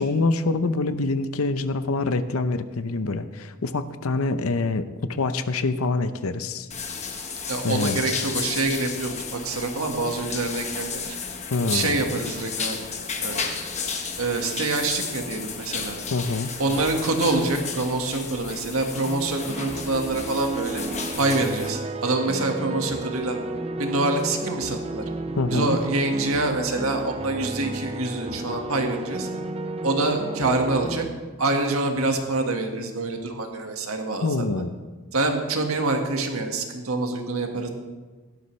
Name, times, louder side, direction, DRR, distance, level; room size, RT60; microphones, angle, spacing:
voice 1, 0.0-6.7 7.6-8.0 11.5-12.2 16.1-16.5 25.4-25.8 34.2-34.7, left 3 dB, 70° left, 11 dB, 0.7 m, -25 dB
sound 1, 6.7-21.7, left 5 dB, 30° left, 1.2 m, -33 dB
voice 2, 7.5-11.2 11.7-12.8 13.2-13.5 14.2-16.0 16.6-20.8 21.1-23.4 23.8-25.0 25.5-29.3 29.8-31.0 31.4-34.6 35.1-37.7, right 2 dB, 70° right, 3 dB, 1.7 m, -26 dB
sound 2, 19.0-31.1, right 2 dB, 25° right, 0.6 m, -32 dB
16.5 x 12.5 x 3.3 m, 1.3 s
head